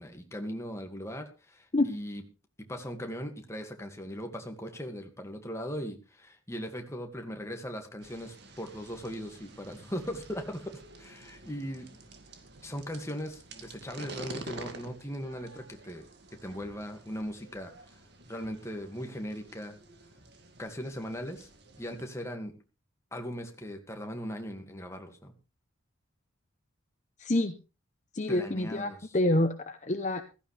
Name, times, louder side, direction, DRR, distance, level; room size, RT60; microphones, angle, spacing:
voice 1, 0.0-2.2 2.7-11.9 12.6-16.1 16.4-17.7 18.3-19.7 20.6-21.5 21.8-22.5 23.1-25.3 28.3-29.2, equal, 15° left, 4 dB, 2.1 m, -39 dB
sound 1, 8.0-22.1, right 3 dB, 55° right, 2.2 m, -49 dB
voice 2, 27.2-27.5 28.1-30.2, left 1 dB, 35° left, 8 dB, 0.9 m, -27 dB
15.5 x 14.5 x 3.4 m, 0.31 s
head